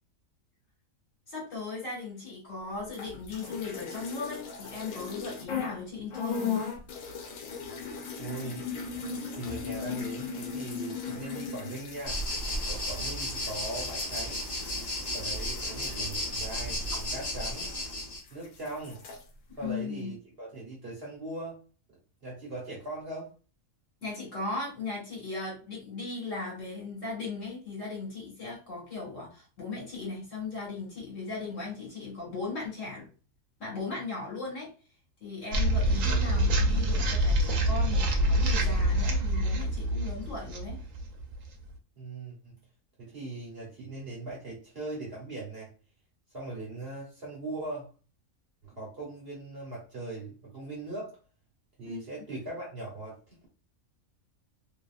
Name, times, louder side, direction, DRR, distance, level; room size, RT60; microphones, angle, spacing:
voice 1, 1.3-6.6 19.6-20.1 24.0-33.0 33.6-34.7 35.2-40.8 51.8-52.0, left 3 dB, 70° left, -4 dB, 1.8 m, -37 dB
sound 1, 2.9-5.8 6.1-18.0 18.3-19.2, left 6 dB, 90° left, 1.0 m, -38 dB
voice 2, 8.2-8.6 9.4-12.2 12.6-14.4 15.1-17.7 18.3-19.0 19.6-21.6 22.2-23.3 41.9-42.5 43.0-45.7 46.3-47.9 48.6-51.2 51.8-53.5, right 2 dB, 50° right, -4 dB, 1.2 m, -40 dB
sound 2, 12.0-18.2, left 1 dB, 40° left, 1.0 m, -33 dB
sound 3, 35.5-41.7, right 1 dB, 80° right, 1.0 m, -26 dB
2.8 x 2.7 x 2.3 m, 0.35 s
omnidirectional pair, 1.4 m